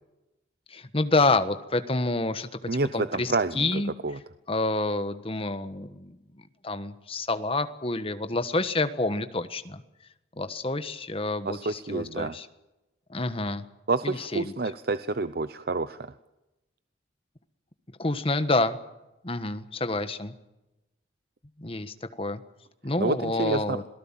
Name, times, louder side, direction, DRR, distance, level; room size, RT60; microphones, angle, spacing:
voice 1, 0.7-2.5 2.9-3.9 4.5-6.2 6.6-9.8 10.4-12.5 13.1-13.6 14.0-14.5 18.0-18.8 19.2-20.3 21.6-22.4 22.8-23.8, left 2 dB, 30° left, 10 dB, 1.4 m, -28 dB
voice 2, 2.7-4.2 11.4-12.3 13.9-16.1 23.0-23.8, right 3 dB, 55° right, 12 dB, 0.7 m, -29 dB
27.5 x 18.0 x 7.5 m, 0.98 s
head